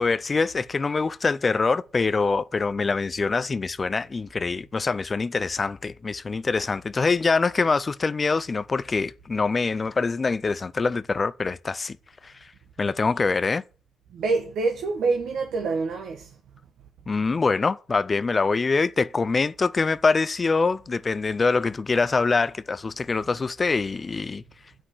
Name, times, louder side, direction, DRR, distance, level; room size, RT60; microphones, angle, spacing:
voice 1, 0.0-12.0 12.2-12.3 12.8-13.6 17.1-24.4, left 4 dB, 30° left, 0.4 m, -24 dB
voice 2, 14.1-16.3, right 4 dB, 75° right, 1.5 m, -26 dB
7.9 x 6.1 x 7.8 m
cardioid pair, 90°, 0 cm